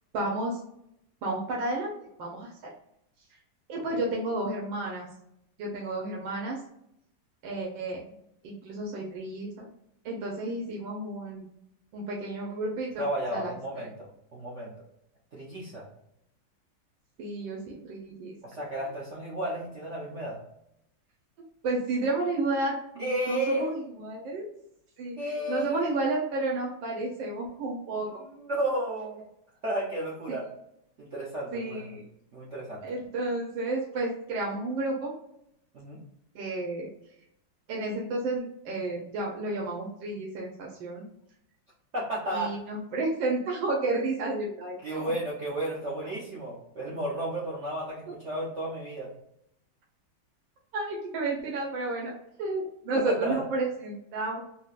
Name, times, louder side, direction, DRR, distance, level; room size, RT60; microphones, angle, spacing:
voice 1, 0.1-0.6 1.2-2.5 3.7-5.1 5.6-6.6 7.4-8.0 8.4-9.7 10.0-11.4 11.9-13.0 13.3-13.5 17.2-17.6 17.8-18.3 21.6-24.5 25.0-28.2 30.3-30.4 31.5-32.0 32.8-35.1 36.3-36.9 37.7-41.1 42.3-45.1 50.7-52.1 52.4-54.4, right 2 dB, 85° right, -2 dB, 1.5 m, -31 dB
voice 2, 13.0-14.7 15.3-15.9 18.4-20.4 23.0-23.8 25.2-26.1 28.2-29.3 29.6-30.5 31.0-32.0 32.3-32.9 35.7-36.0 41.9-42.7 44.8-49.1 52.9-53.4, right 1 dB, 60° right, -5 dB, 0.7 m, -33 dB
4.1 x 2.1 x 2.4 m, 0.77 s
omnidirectional pair, 2.0 m